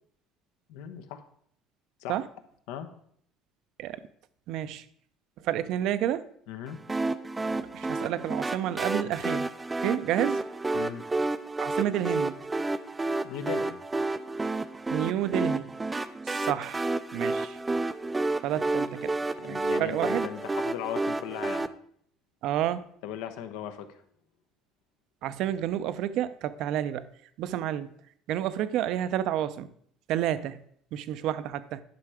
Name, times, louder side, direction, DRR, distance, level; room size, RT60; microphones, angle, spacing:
voice 1, 0.7-1.2 2.0-2.2 2.7-2.9 6.5-6.8 10.7-11.1 13.2-13.8 19.1-21.7 23.0-24.0, left 9 dB, 85° left, 9 dB, 1.0 m, -38 dB
voice 2, 4.5-4.8 5.4-6.3 7.7-9.5 9.8-10.4 11.6-12.4 14.9-15.7 16.2-16.9 17.1-17.6 18.4-19.1 19.4-20.3 22.4-22.8 25.2-27.1 27.4-27.9 28.3-29.7 30.1-30.6 30.9-31.8, right 11 dB, 60° right, 14 dB, 0.6 m, -30 dB
sound 1, 6.9-21.7, right 2 dB, 15° right, 0.4 m, -30 dB
10.5 x 5.6 x 4.9 m, 0.66 s
cardioid pair, 140°, 0 cm